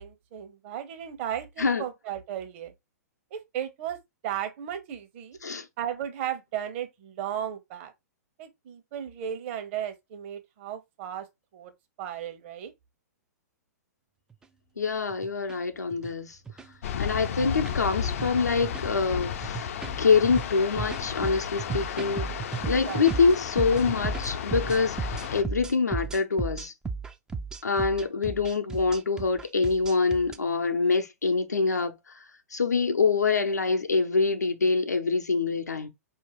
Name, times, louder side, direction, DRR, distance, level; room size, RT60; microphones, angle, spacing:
voice 1, 0.0-2.7 3.3-4.0 4.2-5.4 5.8-7.9 8.4-11.3 11.5-11.7 12.0-12.7 22.8-23.0, right 10 dB, 45° right, 1.0 m, -35 dB
sound 1, 14.3-14.4 15.1-15.5 15.9-16.1 16.5-16.6 17.3-17.8 18.1-18.3 18.6-19.0 19.4-30.4, right 5 dB, 10° right, 0.4 m, -35 dB
voice 2, 14.8-16.4 17.0-19.7 20.0-26.7 27.6-35.9, left 4 dB, 85° left, 0.7 m, -25 dB
sound 2, 16.8-25.4, left 8 dB, 55° left, 0.5 m, -33 dB
4.5 x 2.8 x 3.0 m
figure-of-eight pair, 115°, 9 cm